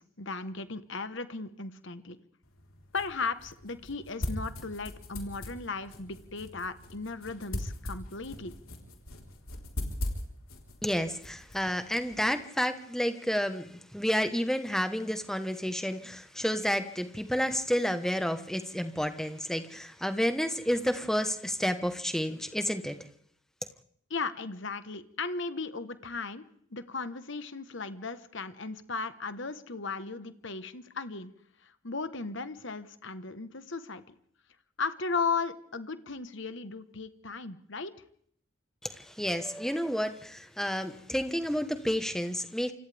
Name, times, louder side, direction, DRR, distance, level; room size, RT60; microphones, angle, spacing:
voice 1, 0.0-2.2 2.9-8.5 24.1-26.4 26.7-31.3 31.6-34.0 34.8-37.9, left 4 dB, 55° left, 11 dB, 1.3 m, -36 dB
sound 1, 2.4-12.3, left 1 dB, 80° left, 4.3 m, -40 dB
voice 2, 10.8-23.0 38.8-42.7, equal, ahead, 8 dB, 1.3 m, -30 dB
28.5 x 26.0 x 3.5 m, 0.65 s
head